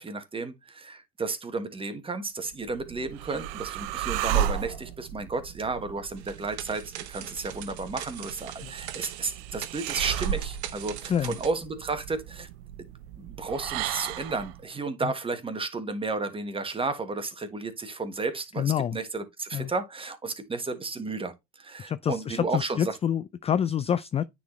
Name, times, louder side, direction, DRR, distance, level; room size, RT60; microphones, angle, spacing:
voice 1, 0.0-12.5 12.8-22.9, right 3 dB, 15° right, 1.4 m, -33 dB
sound 1, 2.5-14.6, right 11 dB, 65° right, 0.7 m, -34 dB
sound 2, 6.2-11.5, right 11 dB, 85° right, 1.0 m, -41 dB
voice 2, 18.6-19.0 19.5-19.7 21.8-24.2, left 9 dB, 20° left, 0.4 m, -27 dB
9.2 x 4.2 x 3.1 m
hypercardioid pair, 90°, 32 cm